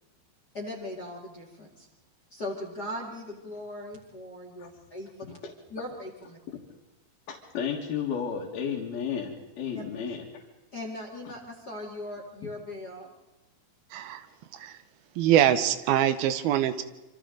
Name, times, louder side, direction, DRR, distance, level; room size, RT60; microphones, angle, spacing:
voice 1, 0.5-1.9 2.3-5.4 5.7-6.4 9.7-9.8 10.7-13.1, left 1 dB, 30° left, 0 dB, 2.3 m, -39 dB
voice 2, 7.3-10.3 12.4-12.5, left 7 dB, 80° left, -3 dB, 3.7 m, -33 dB
voice 3, 13.9-14.3 14.5-14.8 15.2-16.8, right 11 dB, 90° right, 11 dB, 2.9 m, -24 dB
27.0 x 25.5 x 3.9 m, 1.0 s
omnidirectional pair, 4.3 m